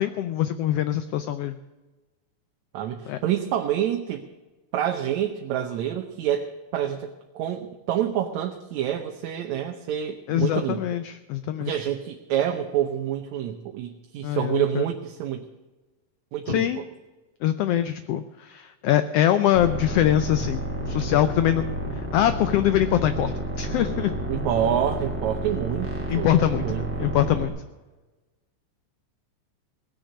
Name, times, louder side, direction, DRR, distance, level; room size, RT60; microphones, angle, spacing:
voice 1, 0.0-1.6 3.1-3.2 10.3-11.7 14.2-14.9 16.5-16.8 17.4-20.6 20.9-21.6 21.9-24.1 26.1-26.6 27.0-27.5, left 11 dB, 80° left, 10 dB, 1.4 m, -23 dB
voice 2, 2.7-4.2 4.7-10.8 11.6-15.5 16.3-16.8 24.3-27.1, right 10 dB, 75° right, 5 dB, 2.1 m, -27 dB
sound 1, 19.5-27.5, right 1 dB, 5° right, 2.1 m, -31 dB
18.0 x 6.6 x 9.5 m, 1.2 s
omnidirectional pair, 3.4 m